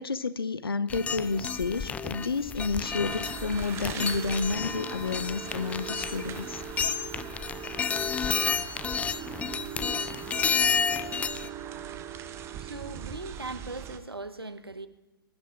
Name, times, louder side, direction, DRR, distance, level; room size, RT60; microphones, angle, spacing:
voice 1, 0.0-6.6, left 4 dB, 75° left, 0.9 m, -30 dB
sound 1, 0.9-11.5, left 6 dB, 10° left, 0.5 m, -31 dB
sound 2, 2.8-14.0, right 9 dB, 20° right, 1.0 m, -40 dB
voice 2, 12.5-14.9, right 3 dB, 80° right, 1.1 m, -39 dB
21.5 x 11.5 x 5.9 m
figure-of-eight pair, 110°, 12 cm